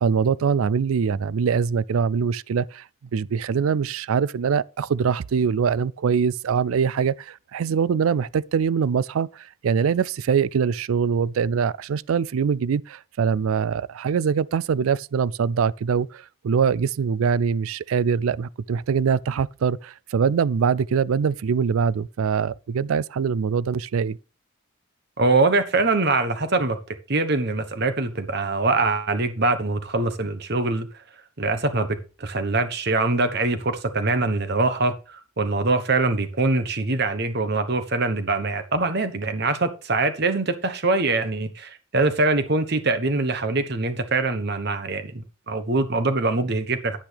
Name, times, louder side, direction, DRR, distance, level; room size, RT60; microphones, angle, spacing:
voice 1, 0.0-2.8 3.1-24.2, right 6 dB, 90° right, 0.4 m, -23 dB
voice 2, 25.2-26.8 27.1-30.9 31.4-31.9 32.2-47.0, right 3 dB, 50° right, 1.2 m, -23 dB
10.0 x 8.8 x 3.4 m
head